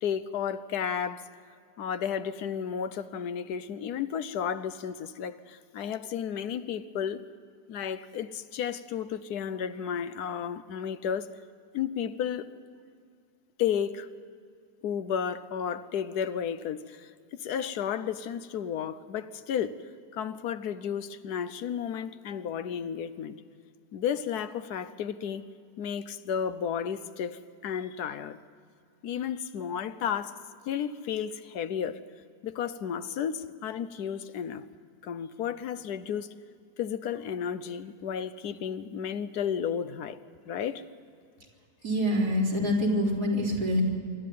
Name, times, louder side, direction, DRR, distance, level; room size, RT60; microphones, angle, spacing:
voice 1, 0.0-1.3 1.8-7.2 7.7-11.3 11.7-12.5 13.6-14.1 14.8-19.8 20.1-23.4 23.9-25.5 25.8-28.4 29.0-30.4 30.7-32.0 32.4-34.7 35.0-36.3 36.8-40.2 40.5-40.8, left 8 dB, 80° left, 1.3 m, -33 dB
voice 2, 41.8-43.8, equal, 80° right, 4.2 m, -26 dB
25.5 x 12.5 x 9.3 m
omnidirectional pair, 1.7 m